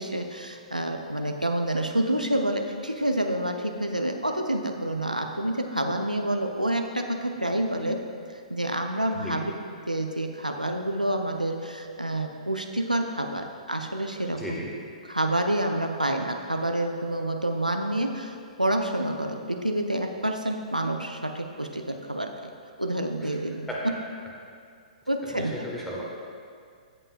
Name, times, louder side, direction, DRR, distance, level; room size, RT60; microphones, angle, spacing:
voice 1, 0.0-8.0 8.3-9.5 9.9-14.6 15.1-22.5 22.8-24.0 25.1-25.5, right 1 dB, 90° right, 4 dB, 0.6 m, -28 dB
voice 2, 14.4-14.7 23.7-23.8 25.2-26.0, equal, 5° left, -5 dB, 1.4 m, -35 dB
16.0 x 5.4 x 2.4 m, 2.2 s
figure-of-eight pair, 115°, 4 cm